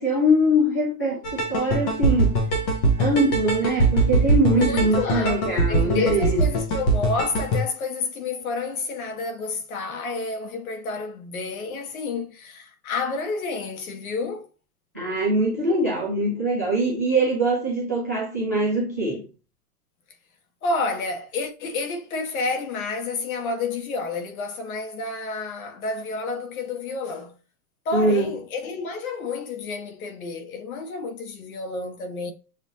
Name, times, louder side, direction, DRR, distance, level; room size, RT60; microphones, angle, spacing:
voice 1, 0.0-2.4 3.0-6.5 14.9-19.2 27.9-28.3, right 1 dB, 15° right, 0.3 m, -22 dB
sound 1, 1.2-7.6, right 2 dB, 20° left, 0.7 m, -22 dB
voice 2, 4.5-14.5 20.6-27.4 27.9-32.3, left 3 dB, 65° left, 1.6 m, -30 dB
7.2 x 2.7 x 2.7 m
supercardioid pair, 170°, 45 cm